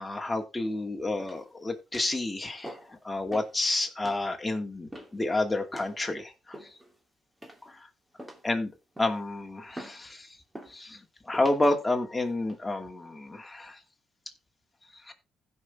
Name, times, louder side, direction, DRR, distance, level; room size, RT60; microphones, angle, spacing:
voice 1, 0.0-6.7 7.6-7.9 8.4-8.7 9.0-10.4 10.7-13.8 15.0-15.1, left 2 dB, 15° left, 2 dB, 2.6 m, -30 dB
sound 1, 1.2-1.6 1.9-2.2 2.6-3.0 3.3-3.6 4.0-4.2 4.9-5.2 5.7-6.0 6.5-7.0 7.4-7.8 8.2-8.5 9.0-9.3 9.8-10.0 10.5-10.8 11.3-11.6 12.2-12.6, right 1 dB, 10° right, 2.8 m, -44 dB
16.0 x 5.9 x 3.5 m, 0.27 s
cardioid pair, 90°, 0 cm